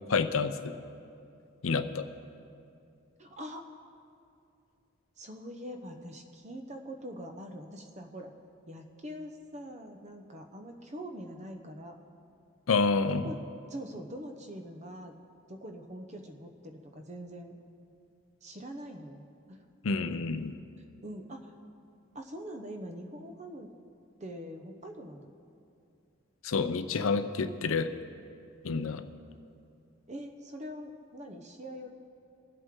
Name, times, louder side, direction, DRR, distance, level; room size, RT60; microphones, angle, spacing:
voice 1, 0.1-0.7 1.6-2.0 12.7-13.3 19.8-20.5 26.4-27.9 28.6-29.1, left 4 dB, 85° left, 10 dB, 0.6 m, -28 dB
voice 2, 3.2-3.6 5.2-8.3 8.7-12.0 13.1-13.4 13.7-15.1 15.5-17.6 18.4-19.6 20.1-20.2 21.0-21.5 22.1-23.7 24.2-25.3 30.1-31.9, equal, 35° right, 4 dB, 0.9 m, -43 dB
23.0 x 8.0 x 3.8 m, 2.6 s
head